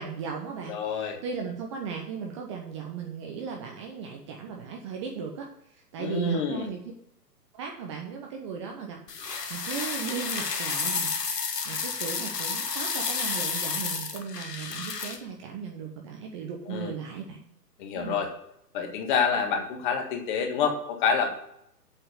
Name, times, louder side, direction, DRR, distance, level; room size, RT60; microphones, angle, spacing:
voice 1, 0.0-6.8 7.6-9.0 9.5-11.1 11.4-17.4 17.9-18.2, right 6 dB, 20° right, 1 dB, 0.7 m, -37 dB
voice 2, 0.7-1.2 6.0-6.7 16.7-16.9 17.8-18.3 18.7-21.3, left 5 dB, 30° left, 4 dB, 1.7 m, -27 dB
sound 1, 9.1-15.2, left 5 dB, 75° left, 1.6 m, -31 dB
8.1 x 6.0 x 7.9 m, 0.75 s
figure-of-eight pair, 130°, 48 cm